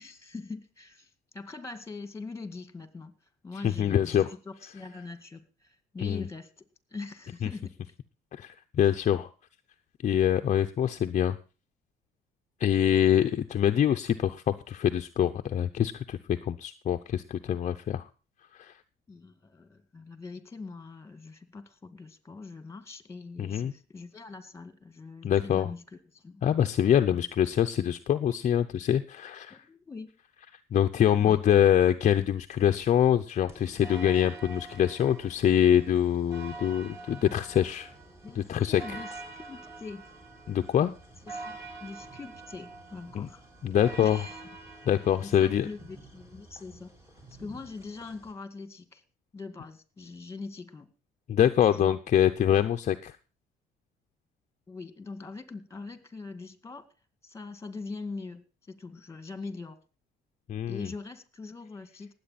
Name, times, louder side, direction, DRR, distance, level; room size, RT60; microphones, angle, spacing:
voice 1, 0.0-3.1 3.4-6.6 6.9-7.7 19.1-26.4 29.5-30.1 31.2-31.4 38.2-38.4 38.7-40.1 41.2-43.4 44.0-44.4 45.2-46.9 47.4-49.0 49.3-50.9 51.7-52.0 54.7-56.9 57.2-59.8 60.7-62.1, left 3 dB, 15° left, 11 dB, 2.0 m, -42 dB
voice 2, 3.6-4.3 6.0-6.3 7.4-7.5 8.3-9.3 10.0-11.4 12.6-18.0 18.5-18.7 23.4-23.7 25.2-25.7 26.4-29.6 30.7-37.9 38.4-39.0 40.5-40.9 43.1-43.3 43.6-44.2 44.9-45.7 51.3-53.1 60.5-60.9, left 10 dB, 45° left, 7 dB, 0.7 m, -25 dB
sound 1, 33.5-48.3, right 3 dB, 15° right, 4.0 m, -46 dB
19.0 x 8.2 x 4.1 m, 0.34 s
cardioid pair, 110°, 17 cm